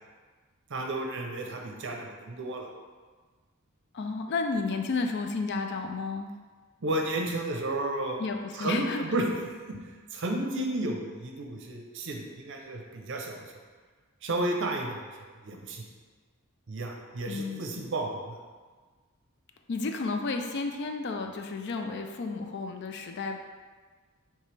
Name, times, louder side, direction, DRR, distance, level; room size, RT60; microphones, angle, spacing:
voice 1, 0.7-2.7 6.8-8.2 8.5-9.3 9.7-9.8 10.1-13.3 14.2-15.8 16.7-18.4, right 2 dB, 55° right, 1 dB, 0.6 m, -32 dB
voice 2, 3.9-6.3 8.2-9.2 17.3-17.6 19.7-23.4, left 3 dB, 50° left, 4 dB, 0.4 m, -32 dB
4.9 x 3.2 x 3.3 m, 1.4 s
head